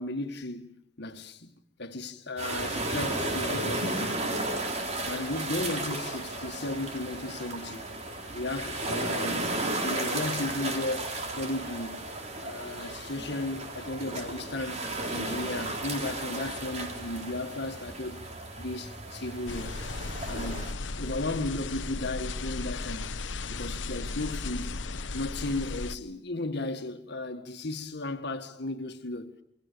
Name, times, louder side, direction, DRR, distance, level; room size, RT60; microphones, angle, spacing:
voice 1, 0.0-1.5 1.8-4.3 5.0-7.9 8.3-9.5 9.8-12.0 12.4-14.8 15.1-18.2 18.6-19.8 20.2-23.2 23.5-24.8 25.1-29.3, left 2 dB, 65° left, 1.8 m, -35 dB
sound 1, 2.4-20.7, right 2 dB, 40° right, 4.2 m, -34 dB
sound 2, 19.5-25.9, left 3 dB, 80° left, 0.9 m, -35 dB
28.0 x 23.0 x 6.9 m
head